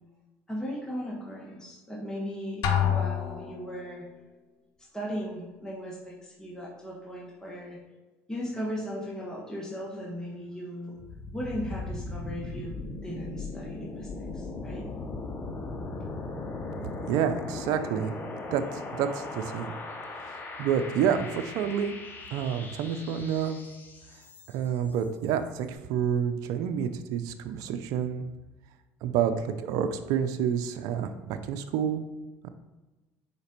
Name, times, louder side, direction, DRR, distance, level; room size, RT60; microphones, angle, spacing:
voice 1, 0.5-4.0 4.9-7.8 8.3-11.0 11.3-14.1 14.3-14.9, equal, 10° left, -4 dB, 1.4 m, -37 dB
Drum, 2.6-3.8, left 9 dB, 65° left, 0.7 m, -27 dB
sound 1, 11.0-24.8, left 3 dB, 30° left, 1.0 m, -38 dB
voice 2, 17.1-18.1 18.5-19.7 20.3-22.0 22.3-23.6 24.5-28.2 29.0-32.0 32.4-32.5, right 8 dB, 70° right, 8 dB, 0.5 m, -29 dB
5.1 x 4.1 x 5.2 m, 1.1 s
supercardioid pair, 85°, 6 cm